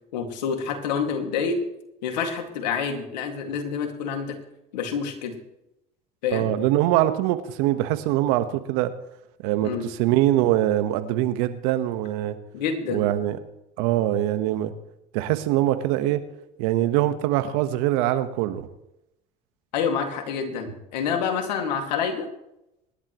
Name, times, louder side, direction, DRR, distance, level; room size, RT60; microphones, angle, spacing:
voice 1, 0.1-1.6 2.0-4.4 4.7-5.3 6.2-6.5 9.6-9.8 12.5-13.0 19.7-22.3, left 6 dB, 85° left, 5 dB, 2.3 m, -27 dB
voice 2, 6.3-8.9 9.4-12.4 12.9-13.4 13.8-14.7 15.1-16.2 16.6-18.7, right 14 dB, 75° right, 10 dB, 1.3 m, -23 dB
25.5 x 11.5 x 3.1 m, 0.86 s
hypercardioid pair, 70°, 21 cm